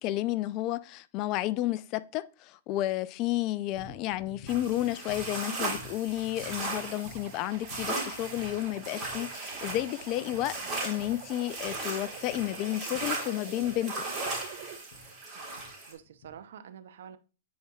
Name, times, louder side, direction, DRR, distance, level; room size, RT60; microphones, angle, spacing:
voice 1, 0.0-14.0, left 15 dB, 40° left, 0.4 m, -31 dB
sound 1, 3.7-16.4, left 2 dB, 75° left, 1.0 m, -51 dB
sound 2, 4.5-15.9, right 2 dB, 20° right, 3.1 m, -37 dB
sound 3, 6.8-14.8, right 8 dB, 45° right, 1.1 m, -48 dB
voice 2, 15.3-17.2, right 8 dB, 70° right, 0.7 m, -48 dB
9.4 x 4.5 x 2.4 m
hypercardioid pair, 135°, 0 cm